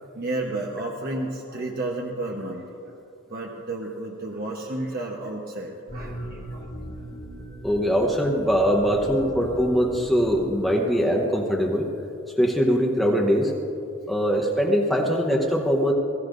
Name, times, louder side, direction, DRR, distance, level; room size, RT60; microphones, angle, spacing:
voice 1, 0.0-2.6 3.3-6.7, right 2 dB, 40° right, -1 dB, 1.1 m, -32 dB
sound 1, 5.9-11.2, equal, 25° left, 2.4 m, -39 dB
voice 2, 7.6-11.9 12.4-13.5 14.1-15.9, equal, ahead, -1 dB, 0.9 m, -22 dB
22.5 x 15.5 x 2.6 m, 2.7 s
head